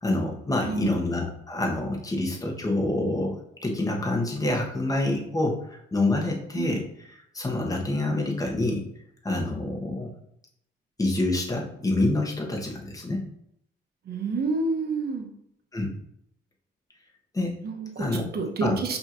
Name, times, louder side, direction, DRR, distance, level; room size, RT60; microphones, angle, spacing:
voice 1, 0.0-7.1 7.3-8.8 9.2-10.1 11.0-13.2 15.7-15.9 17.3-17.6 18.0-18.3 18.6-18.8, left 2 dB, 15° left, 0 dB, 1.1 m, -27 dB
voice 2, 0.6-1.0 6.6-6.8 14.1-15.3 17.6-19.0, right 3 dB, 55° right, 3 dB, 0.9 m, -29 dB
5.3 x 3.0 x 2.5 m, 0.72 s
cardioid pair, 90°, 20 cm